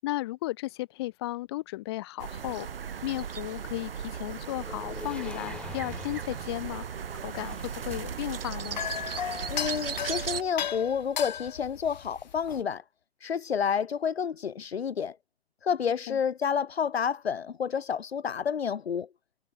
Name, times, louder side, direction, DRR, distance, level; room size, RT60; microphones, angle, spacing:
voice 1, 0.0-2.7 3.0-6.8 7.2-8.8 16.1-16.2, left 18 dB, 25° left, 4.8 m, -34 dB
sound 1, 2.2-10.4, right 7 dB, 65° right, 4.1 m, -37 dB
sound 2, 4.3-8.3, left 4 dB, 5° left, 2.0 m, -45 dB
sound 3, 7.6-12.6, left 9 dB, 45° left, 1.2 m, -36 dB
voice 2, 9.5-12.8 13.2-15.2 15.6-19.1, left 7 dB, 75° left, 2.3 m, -29 dB
hypercardioid pair, 175°, 32 cm